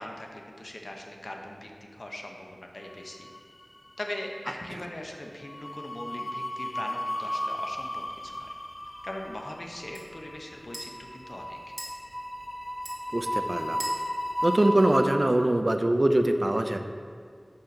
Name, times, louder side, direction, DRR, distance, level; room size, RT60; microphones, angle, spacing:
voice 1, 0.0-3.3 4.0-8.6 9.0-11.6, left 1 dB, 70° left, 1 dB, 0.8 m, -40 dB
sound 1, 3.0-3.8 4.0-4.3 5.5-15.0, equal, 40° left, 0.9 m, -35 dB
sound 2, 7.7-15.5, equal, 20° right, 1.7 m, -47 dB
voice 2, 13.1-13.8 14.4-16.8, right 1 dB, 55° right, 6 dB, 0.4 m, -23 dB
5.6 x 5.6 x 5.2 m, 2.1 s
wide cardioid pair, 45°, 0 cm